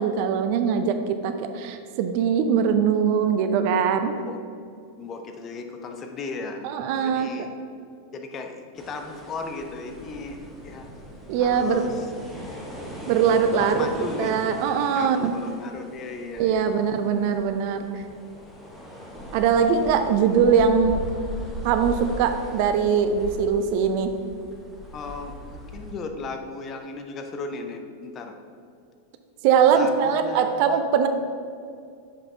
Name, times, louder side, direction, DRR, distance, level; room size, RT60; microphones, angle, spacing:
voice 1, 0.0-4.1 6.6-7.3 11.3-11.8 13.1-13.9 14.2-15.4 16.4-18.0 19.3-21.0 21.6-24.1 29.4-31.1, right 7 dB, 45° right, 8 dB, 0.4 m, -21 dB
voice 2, 5.0-6.7 6.9-7.5 8.1-10.4 10.6-10.9 11.4-12.1 13.6-14.5 14.9-16.6 24.9-28.4 29.7-30.8, left 3 dB, 30° left, 5 dB, 0.6 m, -36 dB
sound 1, 8.8-25.9, equal, 5° left, 1.0 m, -39 dB
7.1 x 5.2 x 2.7 m, 2.3 s
figure-of-eight pair, 90°, 0 cm